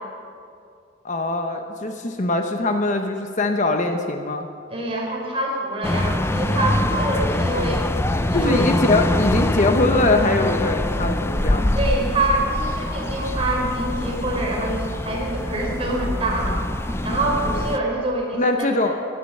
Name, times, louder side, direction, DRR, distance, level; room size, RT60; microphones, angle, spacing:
voice 1, 1.0-4.5 8.3-11.7 18.3-19.0, left 2 dB, 40° left, 5 dB, 0.9 m, -22 dB
voice 2, 4.7-7.9 8.3-8.7 11.7-16.6 17.0-19.0, right 1 dB, 30° right, -2 dB, 3.6 m, -25 dB
sound 1, 5.8-17.8, left 1 dB, 15° left, 0.5 m, -24 dB
16.5 x 11.0 x 6.6 m, 2.5 s
head